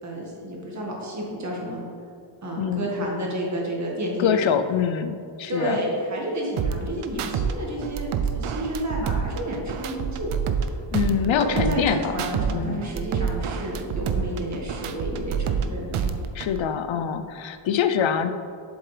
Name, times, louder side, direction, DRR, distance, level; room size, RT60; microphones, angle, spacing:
voice 1, 0.0-1.8 2.4-4.6 5.5-8.1 8.3-10.3 11.1-16.1, right 1 dB, 35° right, -2 dB, 1.6 m, -30 dB
voice 2, 2.6-3.1 4.2-5.8 10.9-12.2 12.5-12.8 16.3-18.3, left 8 dB, 70° left, 9 dB, 0.5 m, -25 dB
sound 1, 6.6-7.5 7.8-10.7 10.9-12.5 12.8-15.6 15.9-16.6, right 7 dB, 85° right, 0.6 m, -27 dB
7.5 x 7.3 x 3.3 m, 2.4 s
wide cardioid pair, 160°, 49 cm